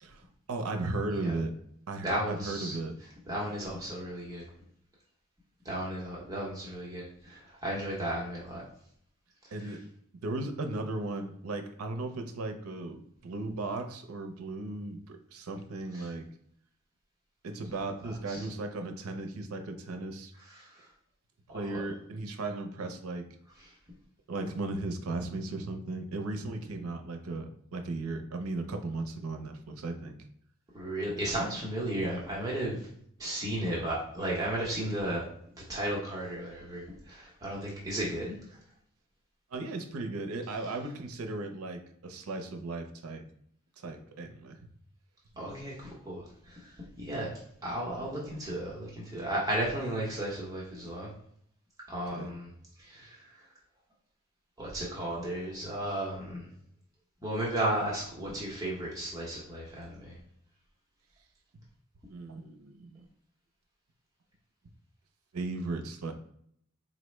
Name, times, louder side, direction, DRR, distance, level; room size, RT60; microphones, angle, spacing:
voice 1, 0.0-1.5 1.9-2.9 9.5-9.8 10.2-16.3 17.4-20.3 21.5-23.3 24.3-30.2 39.5-43.2 43.8-44.6 52.1-52.3 62.1-63.1 65.3-66.3, right 2 dB, 90° right, 6 dB, 0.5 m, -36 dB
voice 2, 2.0-2.7 3.3-4.4 5.6-8.6 9.6-9.7 15.9-16.1 18.0-18.5 20.5-20.9 21.5-21.8 23.6-23.7 30.7-32.9 33.2-35.2 35.7-38.6 45.4-51.1 51.9-52.5 52.8-53.4 54.6-56.5 57.2-60.2, right 1 dB, 15° right, -5 dB, 0.8 m, -34 dB
4.0 x 2.0 x 3.1 m, 0.68 s
head